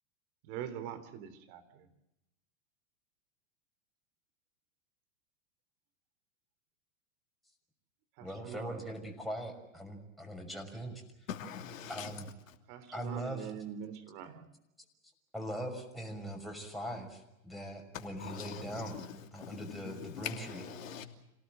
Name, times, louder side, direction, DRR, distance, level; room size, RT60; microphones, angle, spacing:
voice 1, 0.4-1.9 8.2-8.8 12.7-14.5, right 9 dB, 50° right, 3.7 m, -44 dB
voice 2, 8.2-11.0 11.9-12.3 12.9-13.5 15.3-19.0 19.3-20.6, right 1 dB, ahead, 6.1 m, -41 dB
voice 3, 11.3-12.2 17.9-21.1, left 8 dB, 70° left, 3.0 m, -43 dB
27.5 x 18.0 x 7.8 m
hypercardioid pair, 105°, 41 cm